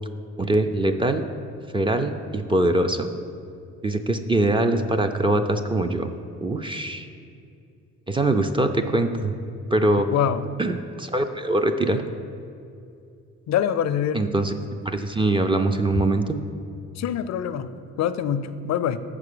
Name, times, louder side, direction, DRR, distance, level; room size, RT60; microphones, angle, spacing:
voice 1, 0.4-1.3 1.7-3.1 3.8-6.1 6.4-7.1 8.1-9.3 9.7-10.1 10.6-12.0 14.1-14.5 14.8-16.4, right 2 dB, 15° right, 6 dB, 0.4 m, -23 dB
voice 2, 10.1-10.4 13.5-14.3 17.0-17.7 18.0-19.0, left 9 dB, 60° left, 12 dB, 0.5 m, -24 dB
6.9 x 4.9 x 6.7 m, 2.5 s
cardioid pair, 90°, 30 cm